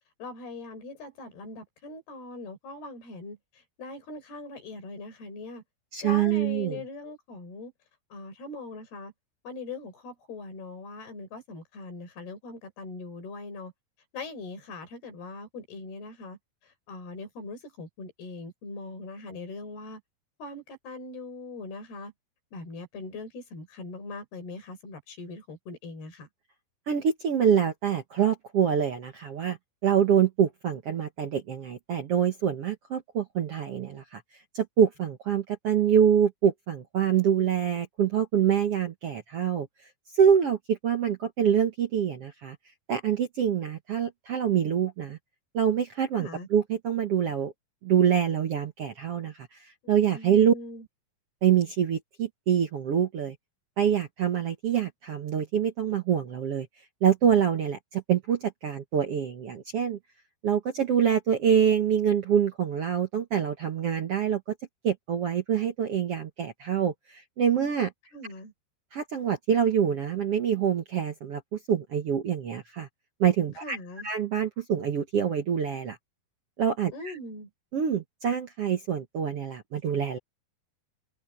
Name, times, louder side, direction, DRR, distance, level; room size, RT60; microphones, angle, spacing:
voice 1, 0.2-3.4 3.8-5.6 6.0-7.7 8.1-9.1 9.5-13.7 14.1-16.4 16.9-20.0 20.4-22.1 22.5-26.3 46.1-46.5 50.1-50.9 68.1-68.5 73.6-74.1 76.9-77.5, left 3 dB, 90° left, 7.0 m, -41 dB
voice 2, 5.9-6.8 26.9-34.2 34.5-39.7 40.1-42.6 42.9-45.2 45.5-47.5 47.8-50.5 51.4-53.3 53.8-56.7 57.0-60.0 60.4-64.4 64.8-67.9 68.9-72.9 73.2-73.8 74.0-76.0 76.6-77.2 77.7-80.2, right 8 dB, 60° right, 1.6 m, -25 dB
omnidirectional pair, 4.4 m